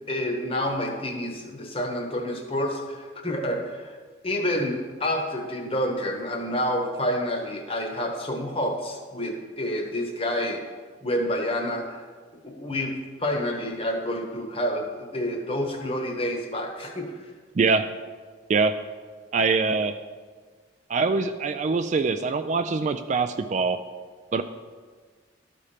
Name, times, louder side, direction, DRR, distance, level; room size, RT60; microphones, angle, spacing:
voice 1, 0.1-4.0 4.2-10.6 11.0-12.0 12.4-17.1, left 1 dB, 30° left, 3 dB, 1.0 m, -28 dB
voice 2, 17.6-17.9 18.5-18.7 19.3-20.0 20.9-23.8 24.3-24.4, right 4 dB, 40° right, 9 dB, 0.3 m, -23 dB
13.0 x 4.3 x 5.0 m, 1.5 s
head